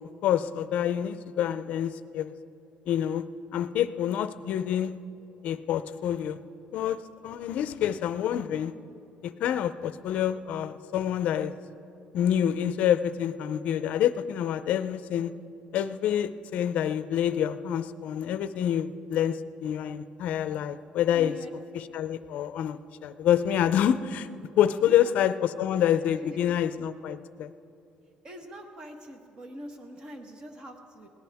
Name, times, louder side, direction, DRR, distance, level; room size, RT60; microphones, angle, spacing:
voice 1, 0.2-2.3 2.9-3.3 3.5-5.0 5.4-6.4 6.7-8.7 9.2-11.5 12.1-15.3 15.7-21.4 21.7-24.3 24.6-27.5, left 10 dB, 55° left, 13 dB, 0.5 m, -27 dB
voice 2, 21.1-21.5 24.9-25.1 26.2-26.5 28.2-31.1, equal, 30° right, 5 dB, 1.2 m, -43 dB
20.5 x 17.5 x 3.5 m, 2.6 s
cardioid pair, 175°, 3 cm